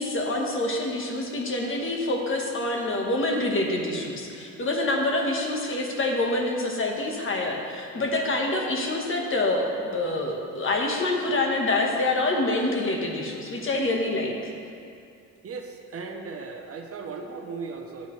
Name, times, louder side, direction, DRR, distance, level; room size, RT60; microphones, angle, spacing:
voice 1, 0.0-14.3, left 2 dB, 45° left, 1 dB, 1.4 m, -26 dB
voice 2, 15.4-18.1, right 4 dB, 50° right, 4 dB, 0.9 m, -37 dB
10.5 x 8.3 x 3.2 m, 2.5 s
cardioid pair, 90°, 30 cm